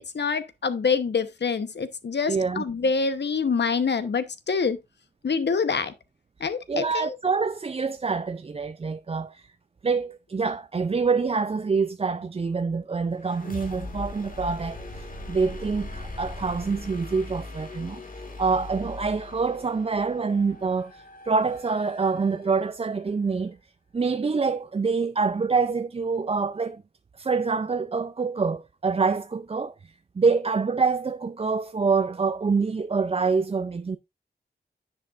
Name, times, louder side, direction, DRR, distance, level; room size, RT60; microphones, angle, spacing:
voice 1, 0.0-4.8 5.2-5.9 6.4-7.1, left 5 dB, 75° left, 0.9 m, -26 dB
voice 2, 2.3-2.6 6.7-9.5 9.8-18.0 18.4-23.6 23.9-26.8 27.2-34.0, right 4 dB, 35° right, 0.4 m, -26 dB
sound 1, 13.2-22.9, left 2 dB, 50° left, 1.8 m, -40 dB
10.0 x 7.6 x 2.4 m
wide cardioid pair, 100°, 18 cm